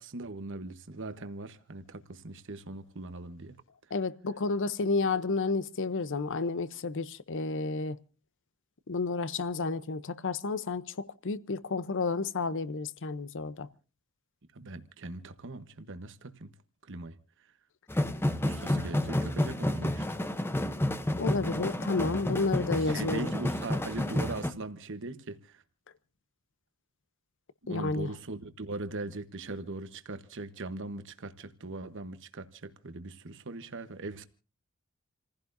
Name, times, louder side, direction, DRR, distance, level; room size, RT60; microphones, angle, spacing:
voice 1, 0.0-3.5 14.5-16.5 16.9-17.1 18.4-20.0 22.7-25.6 27.7-34.3, right 2 dB, 60° right, 1.1 m, -40 dB
voice 2, 3.9-8.0 8.9-10.8 11.2-13.7 21.2-23.3 27.7-28.1, left 3 dB, 60° left, 0.7 m, -31 dB
sound 1, 17.9-24.5, left 1 dB, 10° left, 0.8 m, -30 dB
29.0 x 15.5 x 2.6 m
head